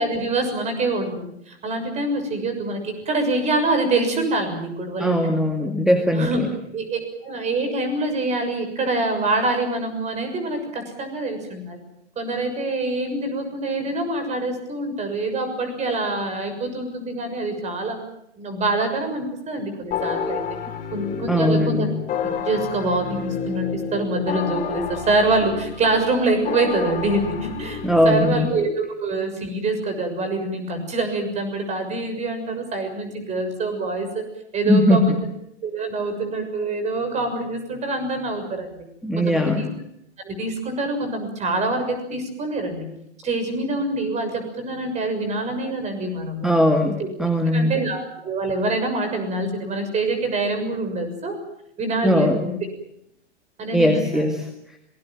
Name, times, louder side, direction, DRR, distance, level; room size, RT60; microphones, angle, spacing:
voice 1, 0.0-5.7 6.1-6.4 6.7-11.8 12.1-18.0 18.4-20.4 20.9-21.9 22.4-34.2 34.5-35.2 35.6-38.7 39.2-39.7 40.2-42.9 43.2-46.5 47.0-47.1 47.5-51.4 51.8-52.5 53.6-54.3, right 2 dB, 20° right, 7 dB, 6.7 m, -25 dB
voice 2, 5.0-6.5 21.3-21.9 27.8-28.5 34.7-35.2 39.0-39.6 46.4-47.7 52.0-52.4 53.7-54.5, left 1 dB, ahead, 4 dB, 2.0 m, -19 dB
sound 1, 19.9-28.6, left 7 dB, 25° left, 5.0 m, -30 dB
27.0 x 20.0 x 7.5 m, 0.75 s
figure-of-eight pair, 115°, 34 cm